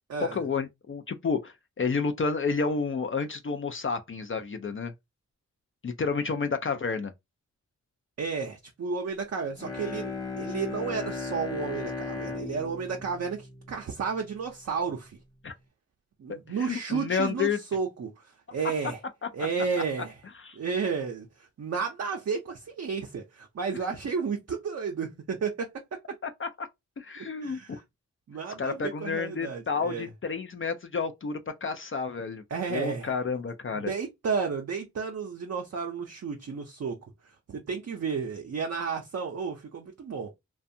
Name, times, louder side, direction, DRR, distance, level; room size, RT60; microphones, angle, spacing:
voice 1, 0.2-4.9 5.8-7.1 15.4-15.5 16.3-17.6 19.4-19.5 20.4-20.6 26.2-26.7 27.0-27.8 28.6-32.4 32.7-33.9, left 5 dB, 45° left, 0.4 m, -30 dB
voice 2, 8.2-10.1 10.4-15.2 16.2-19.0 19.3-20.2 20.5-25.7 27.4-27.8 28.3-30.1 32.5-33.1 33.7-37.0 37.5-40.3, right 5 dB, 60° right, 0.5 m, -32 dB
Bowed string instrument, 9.5-14.4, left 4 dB, 15° left, 0.8 m, -37 dB
2.5 x 2.2 x 2.6 m
wide cardioid pair, 50°, 29 cm